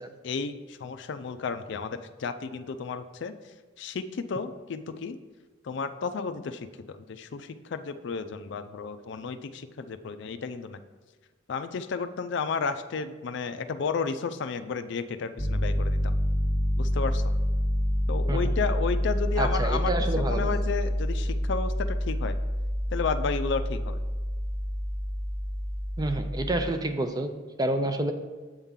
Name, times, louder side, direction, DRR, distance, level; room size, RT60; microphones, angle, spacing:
voice 1, 0.2-3.3 3.8-5.2 5.6-10.8 11.5-16.1 16.8-17.3 18.1-22.4 22.9-24.0, left 5 dB, 65° left, 9 dB, 0.4 m, -32 dB
Piano, 15.4-26.7, equal, ahead, 1.1 m, -28 dB
voice 2, 19.4-20.5 26.0-27.3 27.6-28.1, right 2 dB, 20° right, 7 dB, 0.5 m, -28 dB
8.0 x 3.7 x 5.6 m, 1.3 s
head